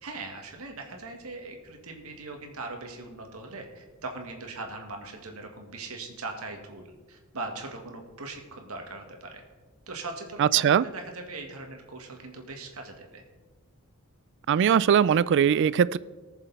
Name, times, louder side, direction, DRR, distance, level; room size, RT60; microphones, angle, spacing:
voice 1, 0.0-9.4 9.9-13.2, right 3 dB, 80° right, 3 dB, 1.9 m, -40 dB
voice 2, 10.4-10.8 14.5-16.0, right 8 dB, 55° right, 19 dB, 0.3 m, -21 dB
18.5 x 6.9 x 4.1 m, 1.3 s
head